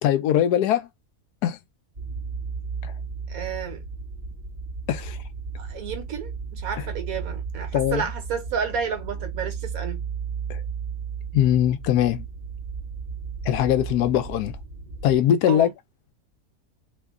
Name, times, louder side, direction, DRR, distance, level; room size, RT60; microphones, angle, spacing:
voice 1, 0.0-0.9 1.4-1.6 2.8-2.9 4.9-5.2 7.7-8.0 10.5-10.6 11.3-12.2 13.4-14.5 15.0-15.7, left 11 dB, 80° left, 1.1 m, -21 dB
sound 1, 2.0-15.2, right 5 dB, 35° right, 0.9 m, -34 dB
voice 2, 3.3-3.8 5.6-10.0 15.5-15.7, right 7 dB, 65° right, 1.4 m, -31 dB
3.1 x 2.2 x 3.6 m
omnidirectional pair, 1.7 m